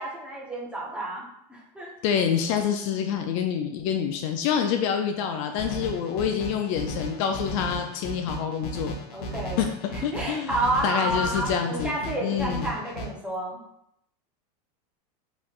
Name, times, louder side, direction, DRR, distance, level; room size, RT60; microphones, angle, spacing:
voice 1, 0.0-1.9 9.1-9.6 9.9-13.6, right 1 dB, 5° right, -4 dB, 0.7 m, -30 dB
voice 2, 2.0-9.0 9.6-10.5 10.8-11.9 12.2-12.6, left 8 dB, 55° left, 5 dB, 0.4 m, -27 dB
sound 1, 5.6-13.1, equal, 75° left, 0.8 m, -35 dB
3.2 x 3.0 x 2.3 m, 0.77 s
supercardioid pair, 135°, 20 cm